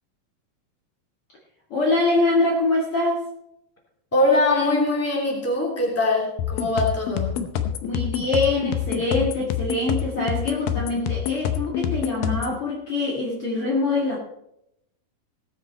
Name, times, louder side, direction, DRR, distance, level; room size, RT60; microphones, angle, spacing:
voice 1, 1.7-3.3 7.8-14.2, left 2 dB, 50° left, -3 dB, 2.3 m, -24 dB
voice 2, 4.1-7.4, left 2 dB, 5° left, -1 dB, 2.4 m, -22 dB
sound 1, 6.4-12.6, left 9 dB, 85° left, 2.6 m, -27 dB
18.0 x 7.8 x 4.3 m, 0.80 s
omnidirectional pair, 3.9 m